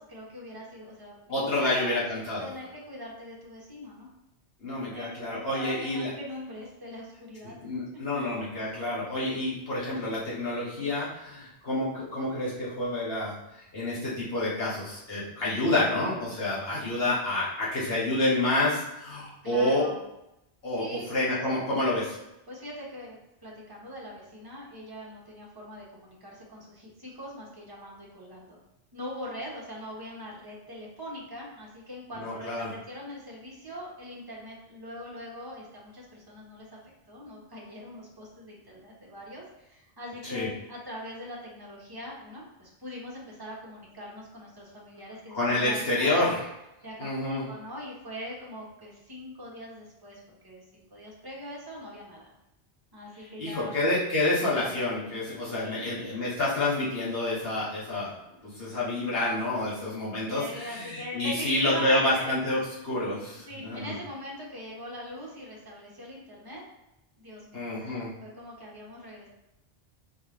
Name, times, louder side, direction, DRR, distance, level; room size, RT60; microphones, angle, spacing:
voice 1, 0.0-1.9 2.4-4.1 4.9-7.7 8.1-8.4 19.4-20.0 20.7-21.2 22.5-28.6 28.9-36.8 37.1-46.4 46.8-52.3 52.9-53.7 55.6-56.2 60.3-62.4 63.5-66.6 67.2-69.3, equal, 20° right, -4 dB, 1.1 m, -42 dB
voice 2, 1.3-2.5 4.6-6.1 7.6-13.3 13.7-19.9 20.6-22.2 32.2-32.7 40.3-40.5 45.3-46.3 47.0-47.5 53.4-58.1 58.4-63.9 67.5-68.1, left 2 dB, 70° left, -8 dB, 2.0 m, -28 dB
4.6 x 3.6 x 3.1 m, 0.89 s
omnidirectional pair, 1.1 m